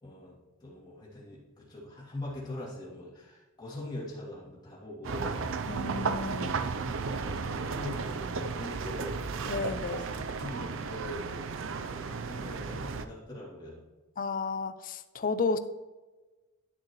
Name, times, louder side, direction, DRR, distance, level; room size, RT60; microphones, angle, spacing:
voice 1, 0.0-5.5 6.8-11.5 11.7-13.8, left 1 dB, 20° left, -6 dB, 2.7 m, -43 dB
sound 1, 5.0-13.1, right 4 dB, 65° right, 0.5 m, -34 dB
voice 2, 5.7-6.6 9.5-10.1 14.2-15.6, left 4 dB, 40° left, 11 dB, 0.5 m, -32 dB
11.0 x 6.6 x 3.1 m, 1.2 s
head